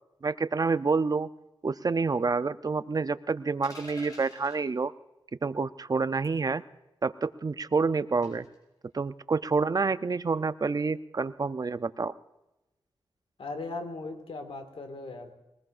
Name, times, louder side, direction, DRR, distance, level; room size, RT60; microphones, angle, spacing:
voice 1, 0.2-1.3 1.6-4.9 5.4-6.6 7.0-8.5 8.9-12.1, right 4 dB, 40° right, 13 dB, 0.5 m, -28 dB
sound 1, 3.6-4.6 6.2-6.5 8.2-8.5, left 1 dB, 40° left, 6.2 m, -48 dB
voice 2, 13.4-15.3, left 3 dB, 70° left, 6 dB, 1.9 m, -38 dB
22.0 x 19.5 x 2.5 m, 0.97 s
wide cardioid pair, 80°, 10 cm